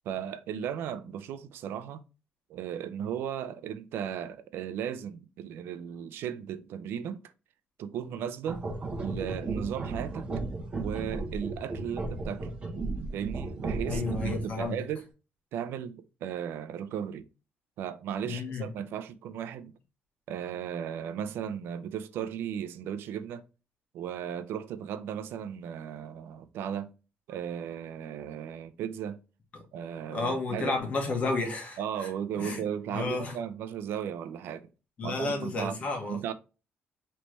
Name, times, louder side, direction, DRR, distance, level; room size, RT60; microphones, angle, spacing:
voice 1, 0.1-2.0 2.5-7.2 7.8-8.6 9.0-10.3 10.8-12.5 13.1-15.1 15.5-17.3 17.8-19.7 20.3-23.4 23.9-26.9 27.3-29.2 29.7-30.8 31.8-34.7 35.0-35.8 36.1-36.3, right 9 dB, 80° right, 0.4 m, -36 dB
sound 1, 8.4-14.6, right 3 dB, 30° right, 0.9 m, -34 dB
voice 2, 13.9-14.8 18.2-18.7 29.5-29.6 30.1-32.1 32.4-32.6 32.9-33.4 35.0-36.2, left 3 dB, 40° left, 1.4 m, -32 dB
4.1 x 3.2 x 3.1 m
cardioid pair, 170°, 4 cm